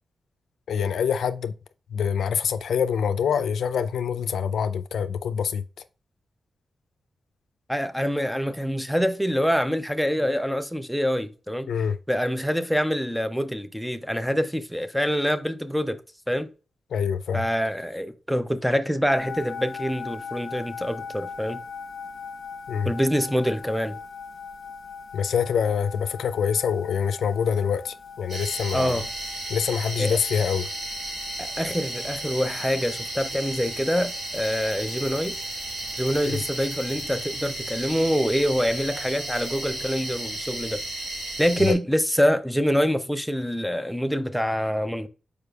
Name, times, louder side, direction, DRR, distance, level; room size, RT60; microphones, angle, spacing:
voice 1, 0.7-1.5 1.9-5.6 11.7-12.0 16.9-17.4 22.7-22.9 25.1-29.0 29.5-30.7 36.2-36.4 41.6-41.8, left 7 dB, 85° left, 0.4 m, -25 dB
voice 2, 7.7-11.7 12.1-16.0 16.3-16.5 17.3-21.6 22.8-24.0 28.7-29.1 30.0-30.2 31.4-35.4 36.0-40.8 41.4-45.1, equal, ahead, 0.5 m, -25 dB
sound 1, 19.1-37.4, left 5 dB, 55° left, 0.9 m, -41 dB
sound 2, 28.3-41.7, right 1 dB, 50° right, 2.5 m, -34 dB
5.0 x 4.7 x 2.3 m
cardioid pair, 95°, 0 cm